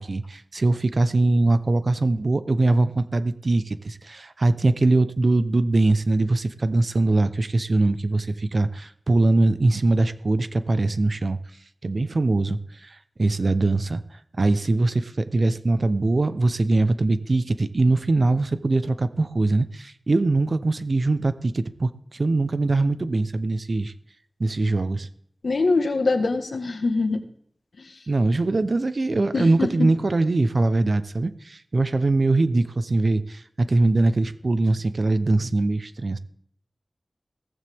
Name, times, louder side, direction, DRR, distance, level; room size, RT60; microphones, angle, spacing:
voice 1, 0.0-11.4 11.8-14.0 14.4-23.9 24.4-25.1 28.1-36.2, right 2 dB, 60° right, 12 dB, 0.9 m, -22 dB
voice 2, 25.4-27.2 27.8-27.9 29.3-29.7, left 3 dB, 80° left, 6 dB, 1.7 m, -23 dB
16.0 x 14.5 x 3.7 m, 0.65 s
wide cardioid pair, 65°, 0 cm